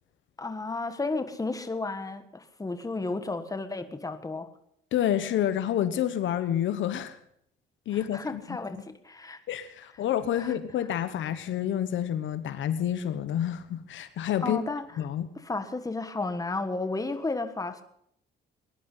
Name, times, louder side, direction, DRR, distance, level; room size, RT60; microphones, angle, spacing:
voice 1, 0.4-4.5 8.1-9.4 10.4-10.5 14.4-14.9 15.3-17.8, left 3 dB, 15° left, 1.5 m, -33 dB
voice 2, 4.9-7.2 7.9-8.8 9.5-14.6 15.0-15.3, left 10 dB, 75° left, 1.1 m, -29 dB
19.5 x 11.0 x 5.6 m
cardioid pair, 90°, 20 cm